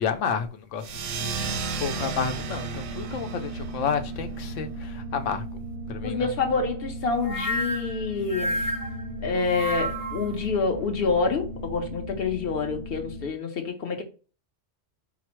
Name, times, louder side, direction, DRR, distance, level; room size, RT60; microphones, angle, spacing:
voice 1, 0.0-5.6 5.9-6.3, left 6 dB, 90° left, 1.0 m, -31 dB
sound 1, 0.8-5.9, right 6 dB, 90° right, 1.0 m, -35 dB
sound 2, 1.3-13.3, right 1 dB, 45° right, 0.5 m, -37 dB
voice 2, 6.0-8.6 9.2-14.0, left 4 dB, 55° left, 1.0 m, -27 dB
sound 3, 7.2-10.3, equal, 20° left, 0.7 m, -30 dB
4.8 x 2.0 x 4.4 m
omnidirectional pair, 1.2 m